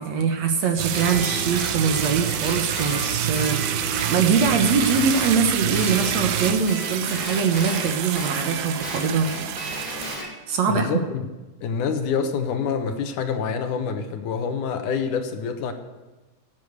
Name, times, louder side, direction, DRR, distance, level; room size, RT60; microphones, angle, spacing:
voice 1, 0.0-9.5 10.5-11.0, right 5 dB, 60° right, 2.1 m, -23 dB
sound 1, 0.8-10.2, right 11 dB, 90° right, 2.5 m, -27 dB
Guitar, 0.9-5.4 5.7-10.3, left 1 dB, 5° left, 4.7 m, -34 dB
voice 2, 10.7-11.3 11.6-15.7, left 6 dB, 70° left, 2.4 m, -26 dB
16.5 x 8.9 x 8.0 m
omnidirectional pair, 4.0 m